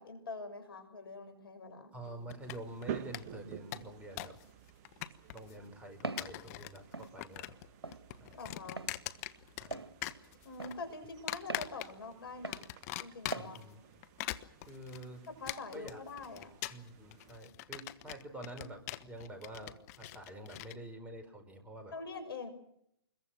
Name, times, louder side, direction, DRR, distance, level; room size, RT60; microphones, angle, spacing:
voice 1, 0.0-1.9 8.3-8.8 10.4-12.6 13.0-13.6 15.4-16.5 21.9-22.5, left 3 dB, 65° left, 9 dB, 6.4 m, -44 dB
voice 2, 1.9-4.4 5.3-7.6 8.2-8.4 9.6-9.8 13.3-13.8 14.7-15.3 15.7-16.0 16.7-21.9, right 1 dB, 10° right, 5 dB, 5.1 m, -47 dB
sound 1, 2.3-2.8 3.1-3.2 3.5-4.4 4.7-5.5 6.0-6.8 7.0-7.7 7.9-9.8 10.0-10.7 11.3-12.1 12.5-13.6 14.0-20.7, left 16 dB, 40° left, 1.3 m, -42 dB
sound 2, 2.4-17.4, right 9 dB, 35° right, 1.6 m, -51 dB
Walk footsteps, 6.0-6.3 6.9-7.1 7.8-8.0 8.8-8.9 9.7-9.9 10.6-10.8 11.5-11.7 12.4-12.6 13.3-13.5, right 3 dB, 85° right, 1.7 m, -40 dB
26.5 x 22.5 x 6.1 m, 0.73 s
figure-of-eight pair, 125°, 13 cm